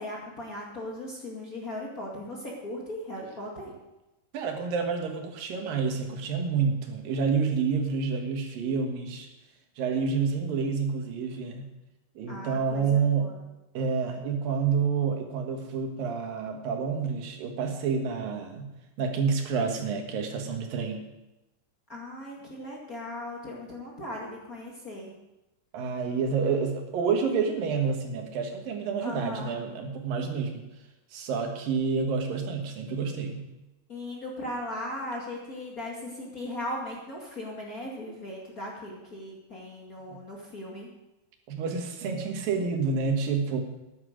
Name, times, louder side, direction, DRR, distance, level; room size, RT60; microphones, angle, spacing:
voice 1, 0.0-3.8 12.3-13.4 21.9-25.1 29.0-29.6 33.9-40.9, left 1 dB, 30° left, -3 dB, 1.9 m, -38 dB
voice 2, 4.3-9.3 9.8-11.7 12.2-13.3 13.7-18.7 19.0-21.0 25.7-30.7 31.1-33.5 40.1-40.2 41.5-43.6, right 5 dB, 85° right, 4 dB, 3.2 m, -28 dB
13.0 x 10.5 x 5.1 m, 0.99 s
omnidirectional pair, 3.9 m